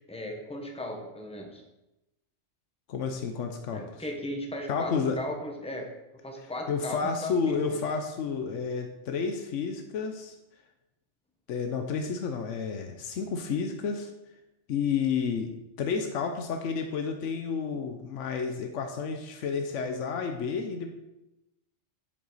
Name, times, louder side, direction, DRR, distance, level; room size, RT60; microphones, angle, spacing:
voice 1, 0.1-1.6 3.7-5.9 6.2-7.8, left 1 dB, 5° left, 1 dB, 1.1 m, -37 dB
voice 2, 2.9-4.0 4.7-5.2 6.7-10.4 11.5-14.1 14.7-20.9, left 5 dB, 80° left, 5 dB, 1.1 m, -31 dB
7.6 x 7.4 x 4.1 m, 0.94 s
omnidirectional pair, 1.2 m